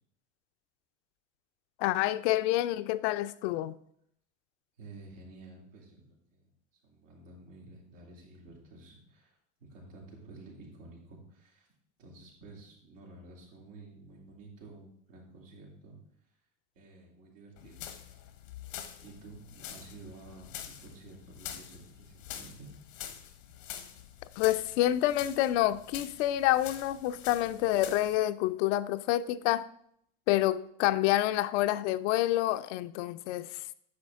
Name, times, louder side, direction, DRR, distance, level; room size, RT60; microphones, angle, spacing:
voice 1, 1.8-3.8 24.4-29.7 30.3-33.6, left 14 dB, 65° left, 0.6 m, -28 dB
voice 2, 4.8-6.0 6.3-6.5 6.8-11.7 12.0-16.0 16.7-17.8 19.0-22.7, right 2 dB, 90° right, 3.2 m, -51 dB
sound 1, 17.6-28.2, left 10 dB, 85° left, 1.1 m, -46 dB
9.7 x 6.1 x 3.6 m
supercardioid pair, 105°, 37 cm